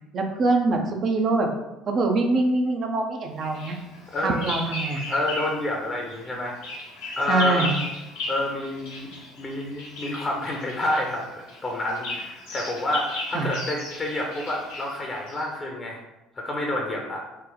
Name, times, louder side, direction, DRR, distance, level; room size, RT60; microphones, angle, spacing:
voice 1, 0.1-1.5 1.9-3.8 4.2-5.0 7.3-7.7 13.3-13.5, right 3 dB, 50° right, 3 dB, 0.6 m, -23 dB
Bird vocalization bird call bird song, 3.4-5.7 6.0-15.5, left 2 dB, 75° left, 0.9 m, -36 dB
voice 2, 4.1-4.5 5.1-6.6 7.2-7.8 8.3-16.0 16.4-17.2, left 1 dB, 30° left, 0 dB, 0.7 m, -28 dB
3.2 x 2.1 x 3.9 m, 0.98 s
hypercardioid pair, 65°, 0 cm